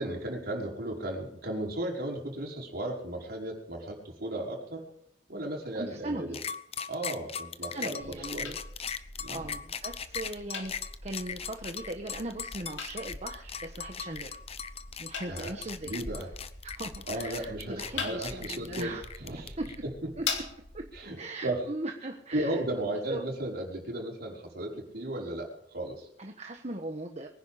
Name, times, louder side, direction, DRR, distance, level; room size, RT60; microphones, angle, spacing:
voice 1, 0.0-4.9 5.3-6.4 6.9-8.5 9.2-9.5 15.3-15.6 15.8-16.3 17.1-18.9 19.2-19.6 19.8-19.9 20.9-21.6 22.3-26.1, right 1 dB, 55° right, -1 dB, 5.4 m, -35 dB
voice 2, 5.8-6.4 7.7-8.6 9.3-10.7 11.0-14.4 15.0-16.0 16.6-19.1 19.4-19.7 20.2-20.3 20.7-20.9 21.2-22.6 23.1-23.2 26.2-27.3, right 2 dB, 35° right, 4 dB, 1.3 m, -39 dB
sound 1, 6.3-19.7, left 7 dB, 30° left, 0.9 m, -38 dB
sound 2, 8.0-21.0, left 5 dB, 70° left, 3.3 m, -42 dB
23.5 x 10.5 x 5.2 m, 0.75 s
head